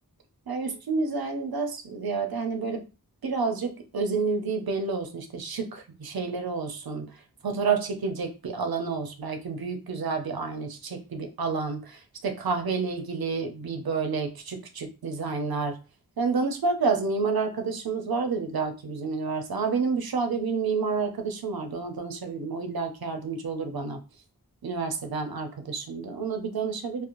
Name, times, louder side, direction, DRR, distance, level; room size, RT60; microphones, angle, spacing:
voice 1, 0.5-2.8 3.2-15.8 16.2-24.0 24.6-27.0, right 4 dB, 80° right, 5 dB, 0.6 m, -29 dB
2.5 x 2.0 x 2.9 m, 0.31 s
wide cardioid pair, 50°, 36 cm